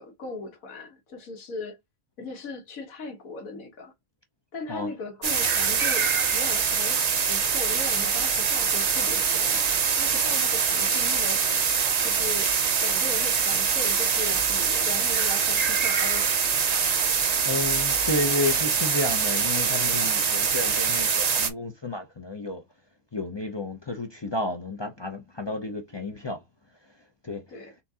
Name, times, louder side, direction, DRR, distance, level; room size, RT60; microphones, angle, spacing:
voice 1, 0.0-1.8 2.2-3.9 4.5-9.6 10.0-11.5 12.0-12.5 12.8-16.5 27.5-27.7, left 3 dB, 80° left, 1.6 m, -38 dB
sound 1, 5.2-21.5, right 6 dB, 45° right, 0.5 m, -24 dB
voice 2, 17.4-22.6 23.1-26.4 27.2-27.4, left 2 dB, 40° left, 0.4 m, -31 dB
4.3 x 3.5 x 2.8 m
omnidirectional pair, 1.4 m